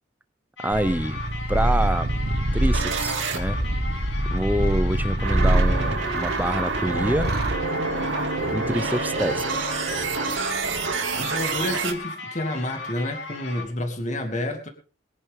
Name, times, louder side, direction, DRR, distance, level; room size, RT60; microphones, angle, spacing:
sound 1, 0.6-13.6, left 3 dB, 65° left, 3.1 m, -37 dB
voice 1, 0.6-1.2 1.5-2.1 2.5-3.6 4.3-7.3 8.5-9.6, right 1 dB, 10° right, 0.8 m, -26 dB
Purr, 0.7-7.6, right 1 dB, 55° right, 1.4 m, -26 dB
sound 2, 2.0-11.9, right 3 dB, 80° right, 2.5 m, -27 dB
voice 2, 10.8-14.7, left 1 dB, 40° left, 2.4 m, -30 dB
22.0 x 10.5 x 3.7 m
head